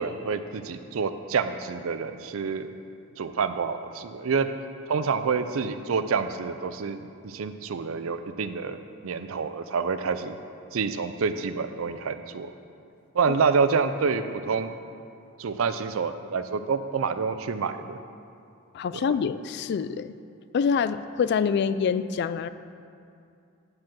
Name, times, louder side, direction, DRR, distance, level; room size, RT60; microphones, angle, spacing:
voice 1, 0.0-2.8 3.2-4.5 4.9-10.4 10.7-12.5 13.1-14.7 15.4-18.0 19.0-19.1, right 5 dB, 70° right, 10 dB, 0.5 m, -28 dB
voice 2, 18.7-20.1 20.5-22.5, left 6 dB, 55° left, 14 dB, 0.3 m, -26 dB
9.5 x 4.8 x 7.5 m, 2.5 s
head